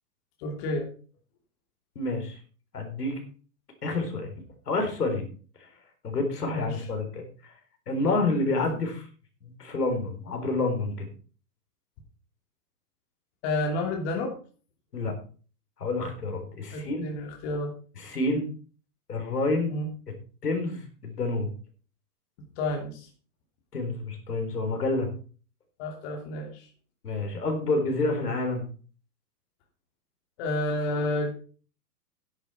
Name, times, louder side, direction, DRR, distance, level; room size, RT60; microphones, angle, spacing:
voice 1, 0.4-0.9 6.4-6.9 8.6-8.7 13.4-14.4 16.7-17.7 19.7-19.9 22.6-23.1 25.8-26.7 30.4-31.3, left 1 dB, 40° left, 2 dB, 3.0 m, -30 dB
voice 2, 2.0-2.4 2.7-3.2 3.8-4.3 4.7-5.3 5.6-5.7 6.0-7.5 7.9-9.1 9.4-11.1 14.9-15.1 15.8-17.1 18.0-18.5 19.1-19.7 20.4-21.5 23.7-25.1 27.0-28.7, left 2 dB, 75° left, 4 dB, 4.2 m, -28 dB
11.5 x 11.0 x 4.3 m, 0.39 s
figure-of-eight pair, 110°, 47 cm